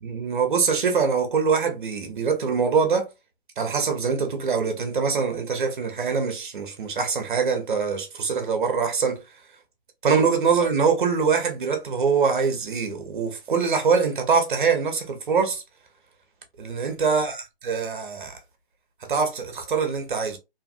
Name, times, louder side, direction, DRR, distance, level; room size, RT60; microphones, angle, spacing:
voice 1, 0.0-3.1 3.6-9.4 10.0-15.6 16.6-18.4 19.0-20.4, right 5 dB, 55° right, 1.0 m, -24 dB
2.8 x 2.5 x 2.5 m
hypercardioid pair, 155°, 30 cm